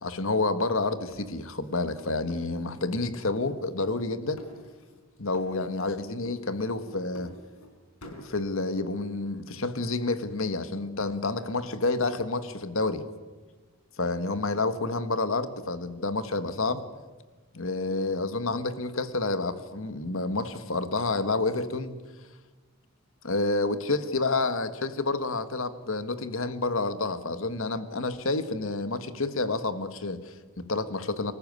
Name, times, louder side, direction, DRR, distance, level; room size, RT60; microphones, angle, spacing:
voice 1, 0.0-4.4 5.2-7.3 8.1-13.0 14.0-16.8 17.5-22.0 23.2-31.3, left 3 dB, 70° left, 11 dB, 1.6 m, -29 dB
sound 1, 1.1-3.1 3.4-4.1 4.4-5.1 5.3-5.9 6.2-7.7 8.0-8.3, equal, 90° left, 4.5 m, -49 dB
25.0 x 14.5 x 9.7 m, 1.3 s
head